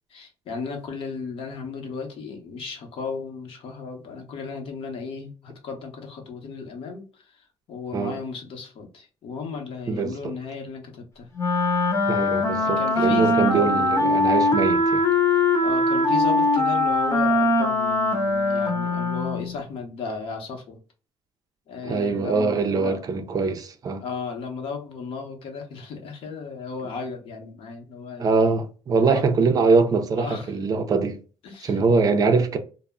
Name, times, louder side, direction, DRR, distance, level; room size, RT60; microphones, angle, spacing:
voice 1, 0.1-11.3 12.5-13.9 15.3-20.8 21.7-23.0 24.0-28.3 28.9-29.2 30.2-30.6 31.4-31.8, left 4 dB, 60° left, 0.8 m, -35 dB
voice 2, 9.9-10.3 12.1-15.0 21.8-24.0 28.2-31.2 31.6-32.6, right 4 dB, 35° right, 0.4 m, -23 dB
Wind instrument woodwind instrument, 11.4-19.6, left 2 dB, 30° left, 0.8 m, -21 dB
2.1 x 2.0 x 3.4 m
cardioid pair, 120°, 11 cm